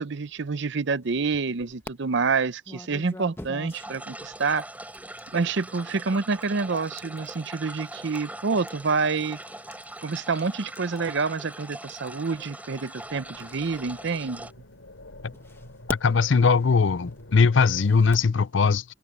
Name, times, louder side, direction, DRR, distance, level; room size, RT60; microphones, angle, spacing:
voice 1, 0.0-4.6 5.3-9.4 10.0-14.5, right 4 dB, 60° right, 0.6 m, -27 dB
sound 1, 1.0-1.9 2.6-14.7 15.3-18.4, left 1 dB, 10° left, 1.3 m, -45 dB
sound 2, 3.7-14.5, right 1 dB, 5° right, 4.8 m, -42 dB
sound 3, 13.0-18.0, left 1 dB, 85° left, 2.9 m, -47 dB
voice 2, 15.9-18.8, left 5 dB, 65° left, 0.5 m, -20 dB
head